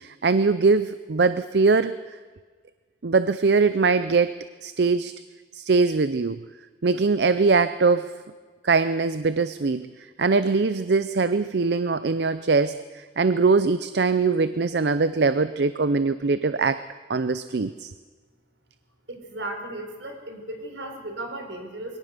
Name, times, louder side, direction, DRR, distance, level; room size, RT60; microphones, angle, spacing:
voice 1, 0.0-1.9 3.0-5.1 5.5-6.4 6.8-8.1 8.6-9.9 10.2-16.8 17.1-17.9, right 4 dB, 65° right, 13 dB, 0.6 m, -22 dB
voice 2, 19.1-22.0, right 1 dB, 80° right, 4 dB, 4.2 m, -35 dB
23.5 x 18.0 x 6.7 m, 1.5 s
head